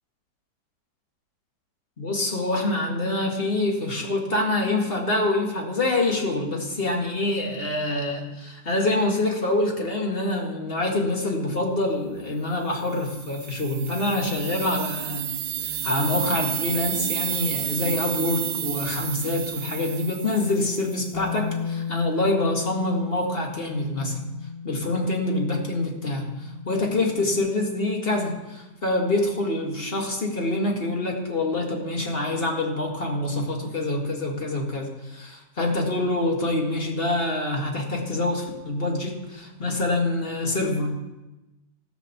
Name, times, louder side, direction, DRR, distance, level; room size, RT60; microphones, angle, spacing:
voice 1, 2.0-15.3 15.6-24.2 24.6-40.9, left 2 dB, 35° left, 1 dB, 2.1 m, -26 dB
sound 1, 13.0-20.9, right 10 dB, 85° right, 1.3 m, -31 dB
Bass guitar, 21.1-27.4, left 6 dB, 15° right, 3.8 m, -35 dB
15.0 x 6.0 x 7.1 m, 1.0 s
omnidirectional pair, 1.8 m